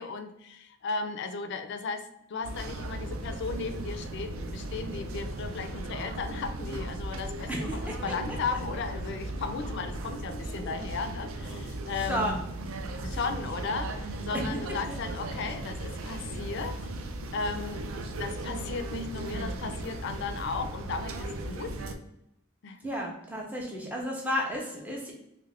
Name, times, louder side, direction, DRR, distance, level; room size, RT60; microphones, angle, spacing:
voice 1, 0.0-12.4 13.0-16.8 17.3-21.7 22.6-22.8, left 4 dB, 55° left, 7 dB, 0.4 m, -35 dB
sound 1, 2.4-22.0, right 1 dB, 80° right, 0.4 m, -37 dB
voice 2, 12.0-12.5 14.3-14.6 14.9-15.0 22.8-25.1, equal, 10° right, -2 dB, 0.5 m, -32 dB
3.1 x 2.4 x 3.3 m, 0.82 s
head